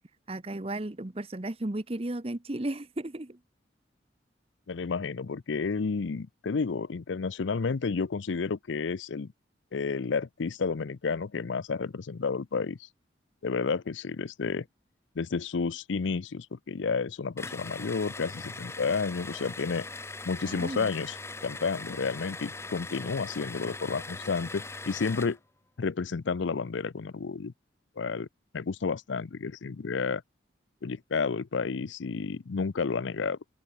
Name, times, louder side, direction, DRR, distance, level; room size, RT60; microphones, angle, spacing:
voice 1, 0.3-3.4 20.4-20.9, right 1 dB, 30° right, 0.9 m, -34 dB
voice 2, 4.7-9.3 9.7-12.8 13.4-14.7 15.2-19.9 20.2-21.2 21.4-25.4 25.8-27.5 28.0-28.3 28.5-30.2 30.8-33.4, left 4 dB, 80° left, 0.5 m, -31 dB
sound 1, 17.4-25.4, left 3 dB, 15° left, 0.9 m, -41 dB
head